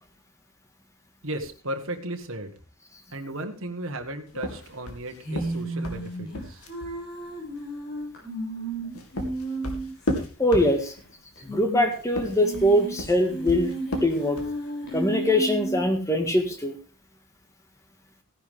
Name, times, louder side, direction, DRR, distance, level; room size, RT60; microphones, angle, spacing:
voice 1, 1.2-2.5 3.1-6.6, right 1 dB, 60° right, 5 dB, 1.6 m, -35 dB
sound 1, 4.3-7.0 8.7-11.1 12.0-14.6, left 1 dB, 85° left, 2.3 m, -33 dB
sound 2, 5.2-10.1 10.4-10.5 10.7-10.8 11.4-11.9 12.3-15.9, right 2 dB, 50° left, 7.4 m, -33 dB
voice 2, 10.4-10.9 11.4-13.7 14.0-14.4 14.9-16.7, left 1 dB, 15° left, 5 dB, 1.8 m, -22 dB
16.0 x 10.5 x 3.6 m, 0.35 s
head